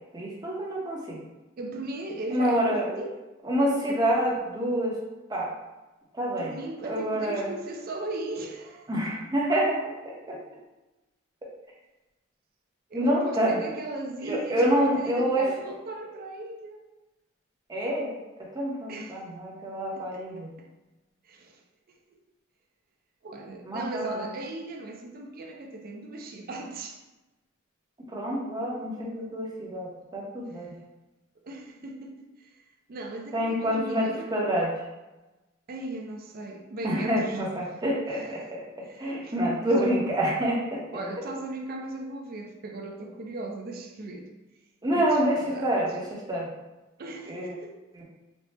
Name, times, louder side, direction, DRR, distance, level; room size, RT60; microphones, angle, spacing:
voice 1, 0.1-1.2 2.3-2.9 3.4-4.9 5.3-5.5 6.1-6.6 6.8-7.5 8.9-9.8 10.3-10.4 12.9-13.6 14.2-15.4 17.7-18.1 18.5-20.5 23.6-24.3 28.1-30.7 33.3-34.7 36.8-38.6 39.0-40.8 44.8-46.5 47.3-47.6 48.0-48.1, equal, 20° right, -4 dB, 0.7 m, -27 dB
voice 2, 1.6-3.2 3.8-4.0 6.3-8.9 12.9-16.8 18.9-19.2 19.9-20.3 20.6-20.7 21.2-21.6 23.2-27.0 30.5-30.7 31.4-32.5 32.9-34.5 35.7-37.4 38.1-38.5 38.8-39.9 40.9-44.3 44.9-45.7 47.0-47.8, right 2 dB, 45° right, 3 dB, 0.4 m, -38 dB
4.1 x 2.0 x 3.2 m, 1.1 s
head